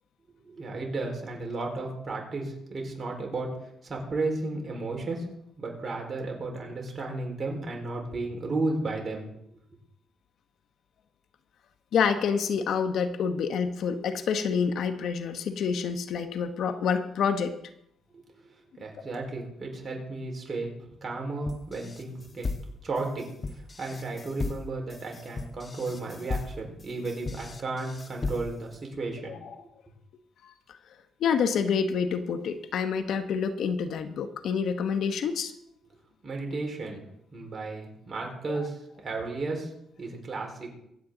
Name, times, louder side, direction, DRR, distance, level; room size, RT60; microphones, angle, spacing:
voice 1, 0.4-5.3 5.6-9.3 18.1-20.7 21.0-22.5 22.8-23.3 23.5-29.4 36.2-37.0 37.3-39.7 40.0-40.7, right 3 dB, 40° right, 0 dB, 4.5 m, -34 dB
voice 2, 11.9-17.6 29.3-29.6 30.4-30.5 31.2-35.5 38.5-38.6, left 6 dB, 70° left, 9 dB, 1.0 m, -28 dB
sound 1, 21.5-28.8, left 3 dB, 35° left, 1.2 m, -36 dB
24.0 x 8.5 x 3.9 m, 0.78 s
cardioid pair, 90°, 0 cm